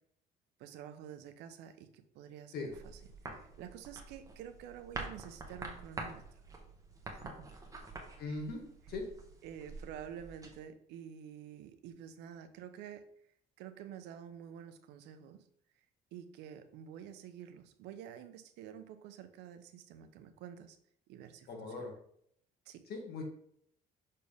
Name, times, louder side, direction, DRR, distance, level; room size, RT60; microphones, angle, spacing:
voice 1, 0.6-2.7 3.2-6.4 7.1-7.5 8.2-8.4 9.4-13.0 13.6-15.5 16.1-20.8 21.1-21.5 22.7-22.9, right 9 dB, 90° right, 9 dB, 0.7 m, -49 dB
sound 1, 2.7-10.6, right 3 dB, 20° right, 1.3 m, -47 dB
voice 2, 8.2-8.6 8.9-9.1 21.5-21.9 22.9-23.2, left 3 dB, 65° left, 2 dB, 1.9 m, -39 dB
6.5 x 4.3 x 3.5 m, 0.68 s
cardioid pair, 110°, 17 cm